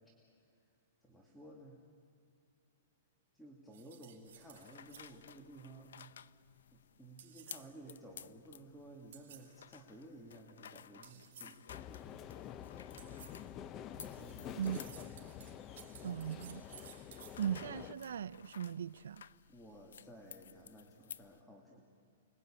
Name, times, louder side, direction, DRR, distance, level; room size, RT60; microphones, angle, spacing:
voice 1, 1.0-1.8 3.3-6.1 6.7-11.6 11.9-12.3 14.1-14.6 19.5-21.8, right 1 dB, 5° left, 2.2 m, -55 dB
sound 1, 3.7-5.2 7.2-7.8 9.1-9.6 11.0-11.7 13.0-13.5 14.0-17.4, right 10 dB, 60° right, 3.7 m, -57 dB
sound 2, 4.3-21.4, left 8 dB, 85° left, 0.6 m, -56 dB
sound 3, 11.7-17.9, left 10 dB, 25° left, 0.7 m, -48 dB
voice 2, 16.0-16.6 17.4-19.2, right 9 dB, 85° right, 0.6 m, -38 dB
29.5 x 21.0 x 8.8 m
hypercardioid pair, 165°, 0 cm